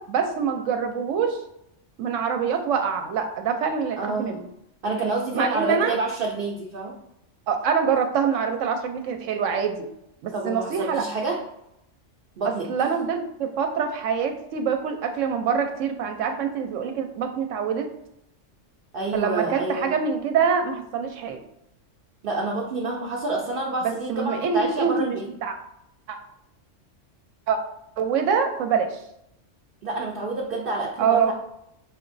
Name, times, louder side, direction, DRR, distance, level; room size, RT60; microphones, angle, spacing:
voice 1, 0.0-1.4 2.0-4.5 5.3-5.9 7.5-9.9 10.2-11.1 12.4-17.9 19.1-21.4 23.8-25.5 26.1-26.2 27.5-27.6 28.0-29.0 31.0-31.3, right 6 dB, 80° right, 5 dB, 0.9 m, -25 dB
voice 2, 4.0-4.3 4.8-7.0 10.3-11.4 12.4-12.9 18.9-19.9 22.2-25.3 29.8-31.3, right 2 dB, 55° right, -2 dB, 0.7 m, -28 dB
5.5 x 2.9 x 2.6 m, 0.80 s
omnidirectional pair, 1.3 m